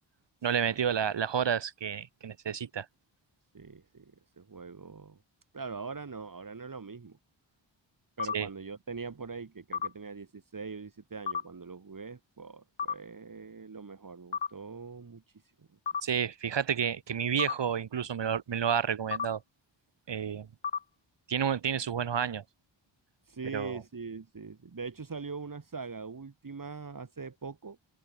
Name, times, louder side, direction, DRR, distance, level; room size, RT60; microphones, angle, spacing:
voice 1, 0.4-2.8 8.3-8.5 16.0-19.4 20.1-20.5 21.3-22.4 23.5-23.8, right 8 dB, 65° right, 1.8 m, -30 dB
voice 2, 3.5-5.2 5.5-7.2 8.2-15.2 15.6-15.7 23.3-27.8, right 4 dB, 45° right, 5.3 m, -42 dB
sound 1, 8.2-8.3 9.7-9.9 11.3-11.4 12.8-12.9 14.3-14.5 15.9-16.0 17.4-17.5 19.1-19.3 20.6-20.8, left 7 dB, 70° left, 3.3 m, -31 dB
wide cardioid pair, 100°, 46 cm